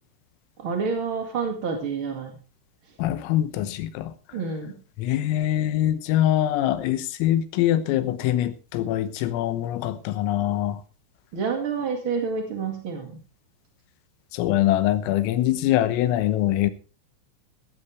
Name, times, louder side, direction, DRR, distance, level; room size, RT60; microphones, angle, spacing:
voice 1, 0.6-2.4 4.3-4.8 11.3-13.2, right 5 dB, 55° right, 1.4 m, -28 dB
voice 2, 3.0-4.1 5.0-10.8 14.3-16.7, left 13 dB, 85° left, 3.7 m, -23 dB
15.5 x 15.0 x 3.4 m
omnidirectional pair, 5.9 m